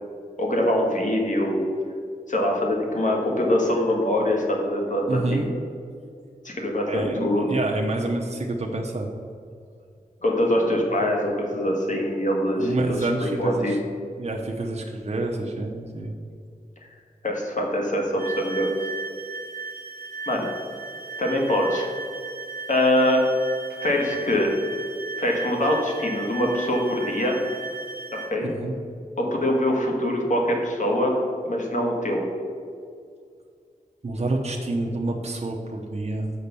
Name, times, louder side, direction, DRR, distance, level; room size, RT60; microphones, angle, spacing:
voice 1, 0.4-1.6 2.3-5.4 6.4-7.5 10.2-13.7 17.2-18.7 20.3-20.5 21.2-21.9 22.7-23.2 23.8-24.5 25.2-27.4 28.1-28.5 29.2-31.1 31.4-32.2, left 1 dB, 55° left, 0 dB, 1.7 m, -23 dB
voice 2, 5.1-5.5 6.8-9.1 11.5-11.7 12.6-13.8 14.2-16.2 28.4-28.7 34.0-36.3, right 2 dB, 45° right, 0 dB, 0.7 m, -28 dB
sound 1, 18.2-28.3, right 4 dB, 85° right, 1.0 m, -36 dB
6.7 x 5.2 x 6.8 m, 2.3 s
wide cardioid pair, 90°, 15 cm